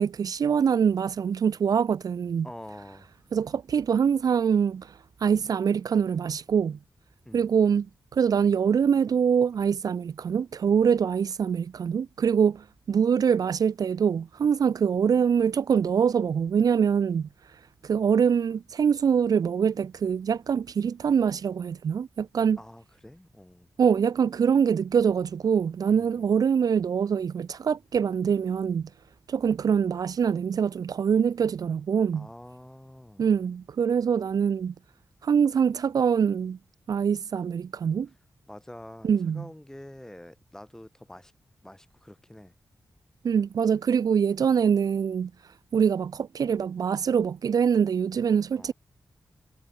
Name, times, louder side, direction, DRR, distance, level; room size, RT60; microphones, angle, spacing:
voice 1, 0.0-2.5 3.3-4.9 5.2-6.8 7.3-7.9 8.1-17.3 17.8-22.6 23.8-28.9 29.3-32.3 33.2-34.7 35.2-36.6 36.9-38.1 39.0-39.5 43.2-45.3 45.7-48.7, right 7 dB, 70° right, 0.8 m, -24 dB
voice 2, 2.4-3.1 7.2-7.5 22.6-23.7 25.9-26.3 32.1-33.3 38.5-41.3 41.6-42.5 48.5-48.7, left 1 dB, 10° left, 5.0 m, -46 dB
wide cardioid pair, 105°, 7 cm